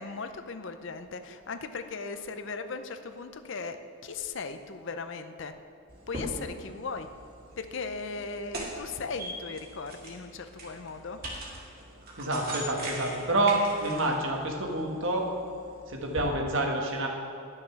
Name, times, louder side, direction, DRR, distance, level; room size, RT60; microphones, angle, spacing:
voice 1, 0.0-5.5 6.1-7.1 7.6-11.2, left 4 dB, 55° left, 9 dB, 0.5 m, -38 dB
sound 1, 5.9-16.3, right 1 dB, 45° right, 1.7 m, -42 dB
voice 2, 12.2-15.3 15.9-17.1, right 2 dB, 60° right, 1 dB, 1.4 m, -28 dB
11.0 x 6.5 x 5.8 m, 2.6 s
head